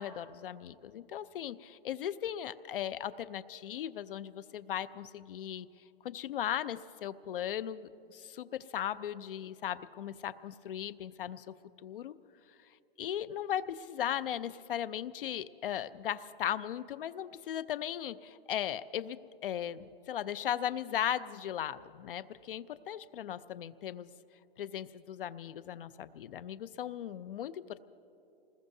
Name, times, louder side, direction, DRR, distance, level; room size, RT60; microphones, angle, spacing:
voice 1, 0.0-5.7 6.0-11.5 11.8-12.1 13.0-24.1 24.6-27.8, left 10 dB, 70° left, 14 dB, 0.5 m, -37 dB
26.5 x 20.5 x 2.7 m, 3.0 s
hypercardioid pair, 170°, 29 cm